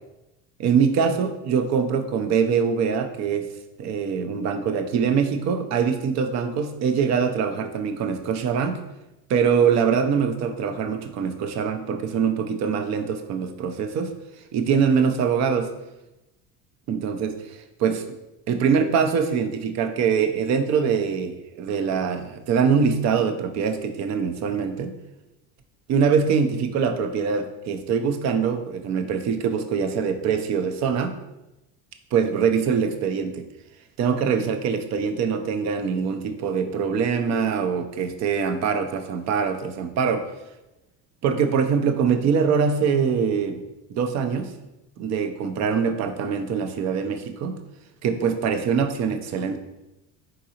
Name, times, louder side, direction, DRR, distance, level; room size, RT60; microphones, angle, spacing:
voice 1, 0.6-3.5 3.8-8.8 9.3-14.1 14.5-15.7 16.9-18.0 18.5-24.9 25.9-31.1 32.1-33.5 34.0-40.3 41.2-43.6 43.9-44.5 45.0-47.6 48.0-49.6, right 6 dB, 45° right, 8 dB, 0.5 m, -23 dB
3.9 x 3.8 x 2.8 m, 0.96 s
supercardioid pair, 110°, 38 cm